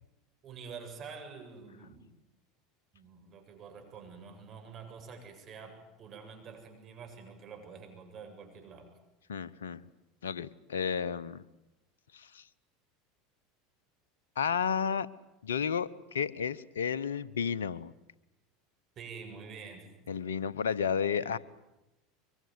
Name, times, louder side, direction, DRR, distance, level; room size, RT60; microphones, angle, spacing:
voice 1, 0.4-2.1 2.9-8.9 19.0-19.9 21.2-21.3, right 5 dB, 45° right, 5 dB, 7.8 m, -47 dB
voice 2, 9.3-9.9 10.2-11.4 12.1-12.4 14.4-15.1 15.4-17.9 20.1-21.4, left 7 dB, 85° left, 18 dB, 0.9 m, -32 dB
24.0 x 23.5 x 9.5 m, 0.95 s
hypercardioid pair, 85°, 0 cm